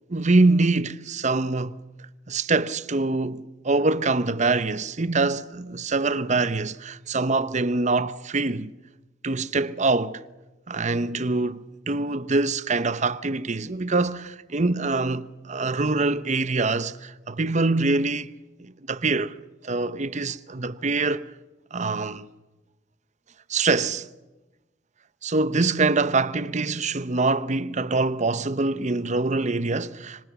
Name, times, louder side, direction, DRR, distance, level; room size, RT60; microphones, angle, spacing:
voice 1, 0.1-1.8 2.3-8.7 9.2-10.2 10.7-18.3 18.6-19.4 19.6-21.3 21.7-22.3 23.5-24.1 25.2-30.2, right 3 dB, 40° right, 0.9 m, -24 dB
25.5 x 25.0 x 7.1 m
head